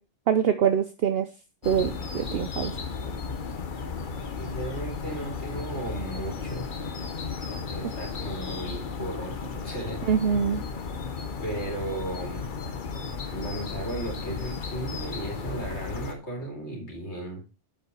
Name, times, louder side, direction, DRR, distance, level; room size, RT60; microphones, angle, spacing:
voice 1, 0.3-1.3 1.6-2.7 10.1-10.6, right 8 dB, 60° right, 9 dB, 0.8 m, -24 dB
sound 1, 1.6-16.1, left 5 dB, 45° left, 1.0 m, -34 dB
voice 2, 4.4-6.8 7.5-10.1 11.4-12.5 13.3-17.5, right 1 dB, 70° left, -1 dB, 2.9 m, -35 dB
7.1 x 5.5 x 4.7 m, 0.31 s
omnidirectional pair, 1.2 m